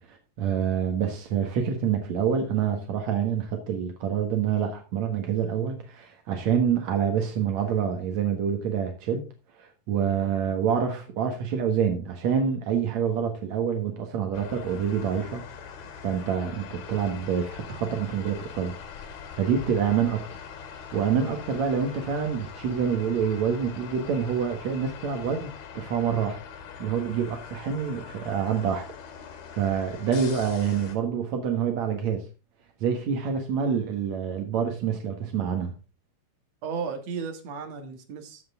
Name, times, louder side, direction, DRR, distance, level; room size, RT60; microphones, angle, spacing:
voice 1, 0.0-9.2 9.6-15.4 16.0-18.7 19.0-20.3 20.9-26.4 26.8-28.9 29.5-32.2 32.8-35.7, right 7 dB, 80° right, 1.6 m, -27 dB
sound 1, 14.3-31.0, left 7 dB, 60° left, 3.4 m, -42 dB
voice 2, 36.6-38.4, right 6 dB, 60° right, 1.7 m, -35 dB
14.0 x 7.8 x 3.6 m
omnidirectional pair, 5.5 m